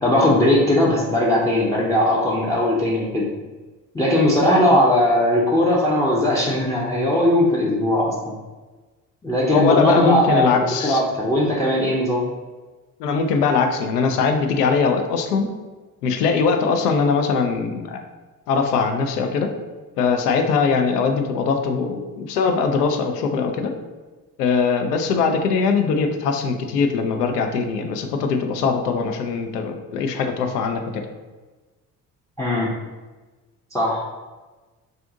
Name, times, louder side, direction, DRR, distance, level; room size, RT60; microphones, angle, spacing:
voice 1, 0.0-3.3 3.9-8.4 9.2-12.3 32.4-32.7 33.7-34.1, left 1 dB, 5° left, -5 dB, 0.5 m, -19 dB
voice 2, 9.5-11.0 13.0-15.5 16.0-18.0 18.5-19.5 20.0-23.7 24.4-31.0, left 5 dB, 75° left, 5 dB, 0.5 m, -21 dB
2.5 x 2.4 x 3.7 m, 1.2 s
figure-of-eight pair, 50°, 47 cm